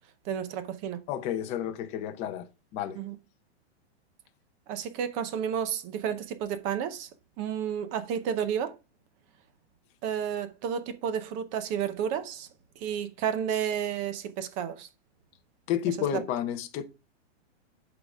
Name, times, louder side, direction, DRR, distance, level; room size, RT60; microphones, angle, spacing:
voice 1, 0.2-1.0 2.9-3.2 4.7-7.1 7.4-8.8 10.0-12.5 12.8-14.9, right 8 dB, 20° right, 0.7 m, -31 dB
voice 2, 1.1-2.5 2.7-3.0 15.7-16.8, left 10 dB, 20° left, 0.7 m, -31 dB
11.5 x 4.0 x 4.7 m
supercardioid pair, 165°, 34 cm